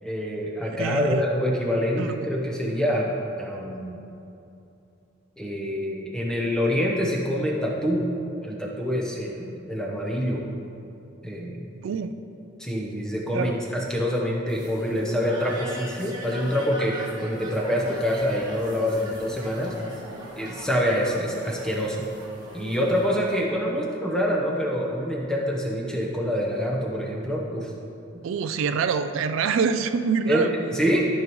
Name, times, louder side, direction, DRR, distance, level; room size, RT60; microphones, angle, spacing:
voice 1, 0.0-3.1 3.4-4.0 5.4-8.1 8.4-10.4 11.2-11.7 12.6-19.8 20.4-22.1 22.5-27.7 28.1-28.2 30.3-31.1, equal, 5° left, -3 dB, 0.8 m, -26 dB
voice 2, 0.8-1.2 2.0-2.1 11.8-12.1 13.3-13.6 28.2-30.5, right 5 dB, 70° right, 10 dB, 0.3 m, -25 dB
sound 1, 14.5-23.4, right 1 dB, 20° right, 1.1 m, -40 dB
13.0 x 5.4 x 3.0 m, 2.8 s
head